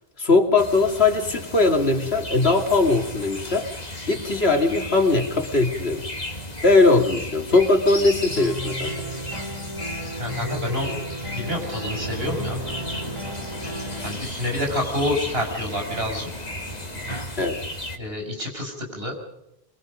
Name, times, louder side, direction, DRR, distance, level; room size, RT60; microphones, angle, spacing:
voice 1, 0.2-3.7 4.1-6.0 6.6-8.9 17.4-17.6, left 3 dB, 75° left, 3 dB, 3.0 m, -20 dB
sound 1, 0.6-18.0, left 1 dB, 40° left, 2.2 m, -35 dB
sound 2, 8.4-14.1, equal, 30° right, 3.0 m, -34 dB
voice 2, 10.2-10.9 11.3-12.6 14.0-16.3 18.0-19.1, left 1 dB, 70° right, 2 dB, 6.5 m, -28 dB
sound 3, 11.8-17.2, right 2 dB, 85° right, 6.1 m, -39 dB
24.0 x 24.0 x 5.2 m, 0.85 s
omnidirectional pair, 1.1 m